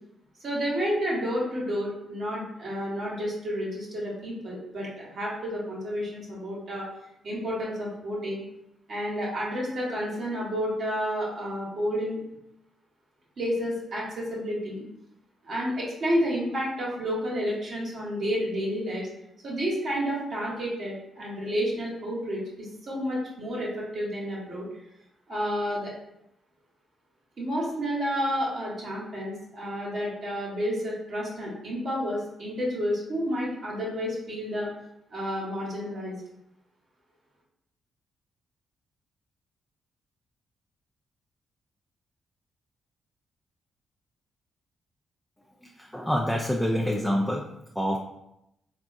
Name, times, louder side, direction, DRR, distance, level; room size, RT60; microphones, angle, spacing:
voice 1, 0.4-6.9 7.2-8.4 8.9-12.2 13.4-14.8 15.4-19.1 19.4-24.7 25.3-25.9 27.4-34.7 35.1-36.2, equal, 65° right, -5 dB, 1.1 m, -30 dB
voice 2, 45.8-47.5 47.8-48.0, equal, 5° left, 0 dB, 0.4 m, -26 dB
3.6 x 2.3 x 2.5 m, 0.84 s
supercardioid pair, 50°, 0 cm